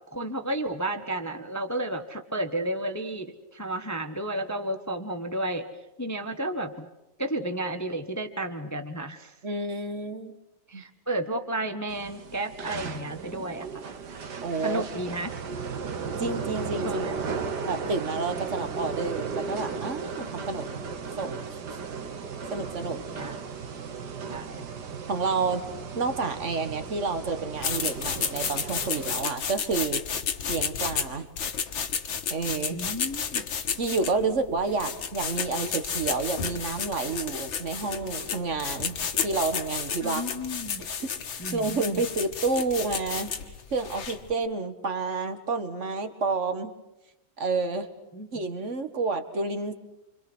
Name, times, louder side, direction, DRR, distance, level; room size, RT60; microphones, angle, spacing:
voice 1, 0.1-5.7 6.0-6.9 7.2-9.3 10.7-13.7 14.6-15.3 16.8-17.1 23.1-23.4 24.3-24.7 32.7-33.4 40.0-40.8 41.4-42.0 48.1-48.4, right 1 dB, 10° left, 7 dB, 0.8 m, -32 dB
voice 2, 9.4-10.3 10.7-10.8 14.4-14.8 16.2-17.1 17.4-20.8 21.2-21.4 22.5-23.0 25.1-25.6 26.0-30.0 30.5-31.3 32.3-32.8 33.8-39.0 39.2-40.2 40.8-41.1 41.5-43.3 43.7-46.7 47.4-47.9 48.3-49.7, right 3 dB, 35° right, 9 dB, 1.8 m, -29 dB
sound 1, 11.9-29.2, right 5 dB, 50° right, 1.9 m, -35 dB
sound 2, 27.6-44.3, left 7 dB, 65° left, 2.2 m, -32 dB
28.0 x 25.5 x 6.3 m, 0.99 s
omnidirectional pair, 2.4 m